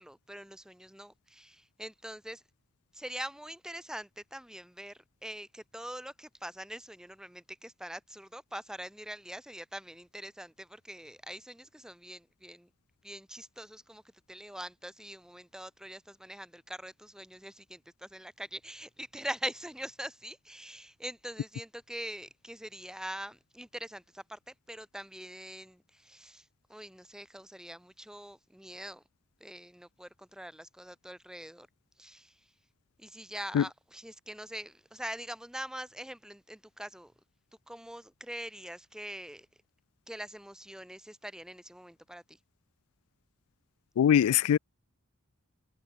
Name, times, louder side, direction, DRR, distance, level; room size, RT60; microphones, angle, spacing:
voice 1, 0.0-2.4 2.9-12.7 13.0-14.0 14.3-26.4 26.7-29.0 29.4-31.7 32.0-32.3 33.0-37.1 37.7-39.5 40.1-42.2, right 1 dB, 5° right, 1.3 m, -43 dB
voice 2, 44.0-44.6, left 9 dB, 85° left, 0.3 m, -22 dB
head